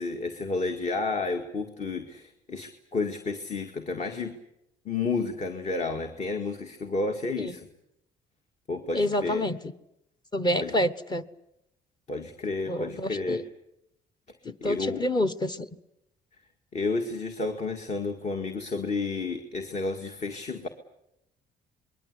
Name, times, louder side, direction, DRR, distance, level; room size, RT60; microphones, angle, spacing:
voice 1, 0.0-4.4 4.9-7.7 8.7-9.4 10.6-10.7 12.1-13.4 14.6-15.0 16.7-20.7, left 3 dB, 45° left, 5 dB, 2.1 m, -31 dB
voice 2, 8.9-9.6 10.3-11.2 12.7-13.4 14.4-15.7, left 1 dB, 25° left, 9 dB, 1.2 m, -28 dB
26.0 x 21.5 x 8.3 m, 0.83 s
cardioid pair, 110°, 17 cm